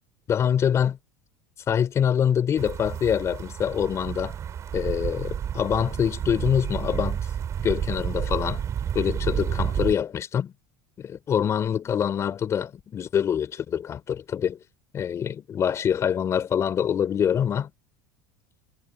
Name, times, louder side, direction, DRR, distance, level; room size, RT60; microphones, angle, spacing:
voice 1, 0.3-1.0 1.7-4.3 4.7-7.3 7.6-8.6 8.9-10.5 11.0-14.6 14.9-17.7, left 8 dB, 30° left, 4.2 m, -25 dB
sound 1, 2.6-9.9, right 9 dB, 30° right, 5.5 m, -30 dB
supercardioid pair, 130°, 9 cm